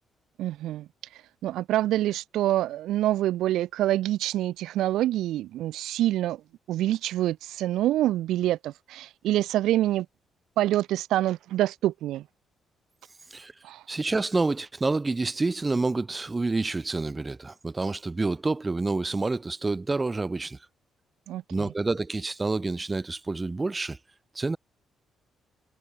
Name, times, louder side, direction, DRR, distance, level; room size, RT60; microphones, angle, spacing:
voice 1, 0.4-0.9 1.4-6.4 6.7-10.1 10.6-12.2 13.6-13.8 21.3-21.7, right 14 dB, 85° right, 0.5 m, -26 dB
voice 2, 13.9-20.6 21.5-24.0 24.3-24.6, right 3 dB, 20° right, 0.5 m, -28 dB
cardioid pair, 90°, 0 cm